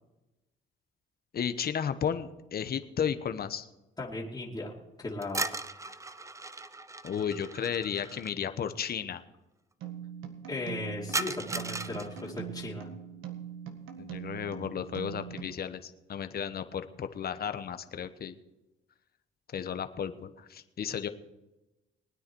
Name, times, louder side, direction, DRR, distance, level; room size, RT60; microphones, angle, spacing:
voice 1, 1.3-3.7 7.0-9.2 14.0-18.3 19.5-21.1, left 8 dB, 50° left, 10 dB, 1.1 m, -33 dB
voice 2, 4.0-4.7 5.0-5.4 10.5-12.9, left 2 dB, 20° left, -4 dB, 2.6 m, -37 dB
sound 1, 5.2-8.3 11.1-12.3, right 3 dB, 15° right, 0.6 m, -37 dB
sound 2, 9.8-15.5, right 9 dB, 80° right, 1.8 m, -42 dB
20.5 x 9.6 x 4.6 m, 1.0 s
cardioid pair, 90°, 20 cm